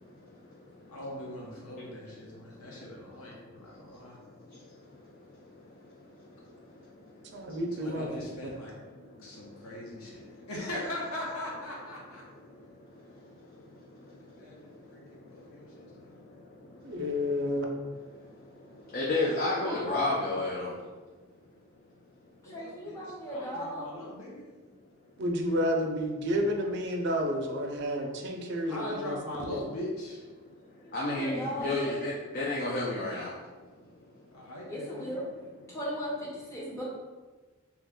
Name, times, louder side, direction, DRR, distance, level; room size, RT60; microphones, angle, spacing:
voice 1, 0.9-4.2 7.8-8.7 9.2-12.2 14.2-16.1 22.4-23.0 23.3-24.4 28.7-30.2 34.3-35.1, left 1 dB, 90° left, -3 dB, 0.8 m, -40 dB
voice 2, 7.3-8.2 16.8-17.7 25.2-29.2, equal, 55° right, 1 dB, 0.5 m, -30 dB
voice 3, 18.9-20.7 30.9-33.3, left 2 dB, 45° left, -4 dB, 0.4 m, -30 dB
voice 4, 19.5-20.0 22.4-23.9 30.8-32.0 34.7-35.2 35.7-36.8, equal, 15° left, -6 dB, 0.7 m, -37 dB
2.9 x 2.3 x 3.5 m, 1.3 s
head